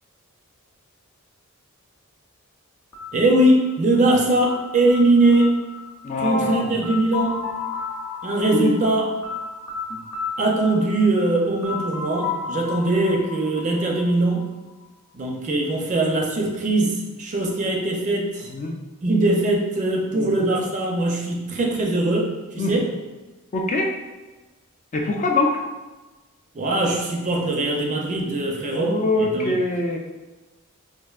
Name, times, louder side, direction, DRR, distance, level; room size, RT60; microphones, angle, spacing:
sound 1, 2.9-14.7, left 5 dB, 90° left, 0.6 m, -34 dB
voice 1, 3.1-5.6 6.2-7.4 8.2-9.1 10.4-14.5 15.1-18.5 19.0-22.9 26.5-29.6, right 2 dB, 35° right, 0 dB, 0.5 m, -21 dB
voice 2, 6.0-6.7 8.5-8.7 18.5-18.7 20.1-20.3 22.6-22.7 23.5-23.9 24.9-25.6 28.7-30.0, left 2 dB, 35° left, 1 dB, 0.4 m, -23 dB
4.4 x 2.4 x 2.4 m, 1.2 s
head